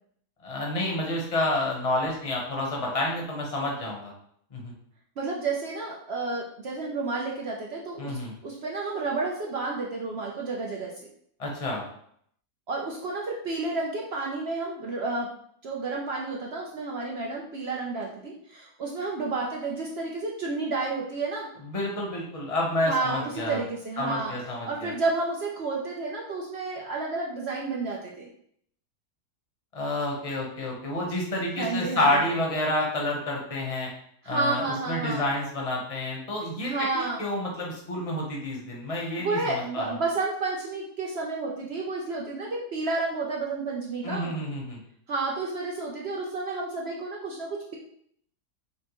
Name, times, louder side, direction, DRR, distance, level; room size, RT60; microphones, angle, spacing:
voice 1, 0.4-4.1 4.5-4.7 8.0-8.3 11.4-11.8 21.6-23.6 24.0-24.9 29.7-33.9 34.3-39.8 44.0-44.8, left 1 dB, 30° left, -2 dB, 0.8 m, -29 dB
voice 2, 5.2-11.0 12.7-15.3 15.6-21.5 22.9-24.3 24.6-28.3 31.6-32.1 34.2-35.2 36.6-37.3 39.2-44.3 45.1-47.8, right 3 dB, 65° right, -3 dB, 0.6 m, -31 dB
5.8 x 2.1 x 3.0 m, 0.67 s
omnidirectional pair, 1.7 m